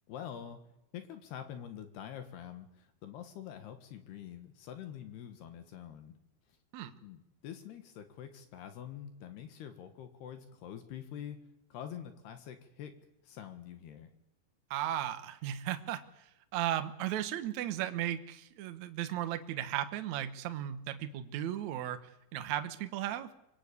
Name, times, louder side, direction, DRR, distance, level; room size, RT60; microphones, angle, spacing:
voice 1, 0.1-0.6 0.9-6.2 6.5-6.6 7.0-11.4 11.7-12.9 13.2-14.1, left 9 dB, 70° left, 8 dB, 3.3 m, -46 dB
voice 2, 14.7-16.0 16.5-22.0 22.3-23.3, right 12 dB, 85° right, 9 dB, 1.6 m, -35 dB
25.5 x 22.0 x 8.5 m, 0.87 s
omnidirectional pair, 5.3 m